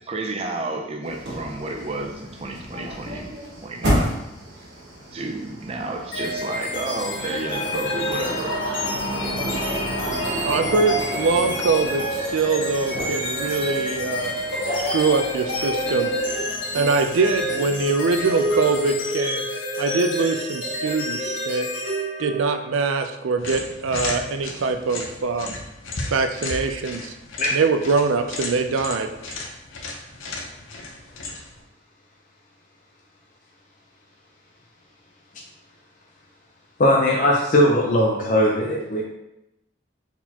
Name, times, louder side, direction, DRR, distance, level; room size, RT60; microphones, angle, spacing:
voice 1, 0.0-3.3 3.6-4.2 5.1-8.6, right 2 dB, 30° right, 4 dB, 0.5 m, -31 dB
sound 1, 1.0-18.9, equal, 60° right, 1.4 m, -32 dB
sound 2, 6.1-22.8, equal, 70° left, 1.5 m, -28 dB
voice 2, 10.4-14.4 14.6-16.1 16.7-19.5 19.8-21.7 22.2-25.6 26.1-27.1 27.5-29.1, right 4 dB, 90° right, 7 dB, 0.4 m, -23 dB
sound 3, 23.4-31.6, left 2 dB, 85° left, 0.8 m, -34 dB
voice 3, 36.8-39.0, left 1 dB, 40° left, -2 dB, 0.6 m, -19 dB
4.3 x 4.1 x 2.8 m, 0.89 s
head